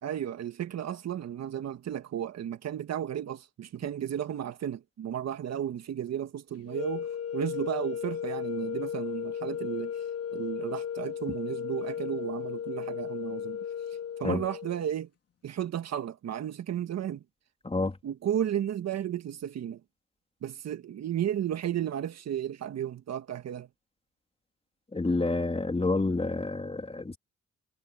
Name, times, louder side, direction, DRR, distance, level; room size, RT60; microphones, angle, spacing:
voice 1, 0.0-10.1 10.3-13.6 14.2-15.1 15.4-17.2 18.0-19.8 20.4-23.7, right 10 dB, 65° right, 1.7 m, -33 dB
sound 1, 6.7-14.9, left 8 dB, 55° left, 3.6 m, -35 dB
voice 2, 17.6-18.0 24.9-27.2, left 3 dB, 20° left, 3.5 m, -28 dB
supercardioid pair, 70°, 29 cm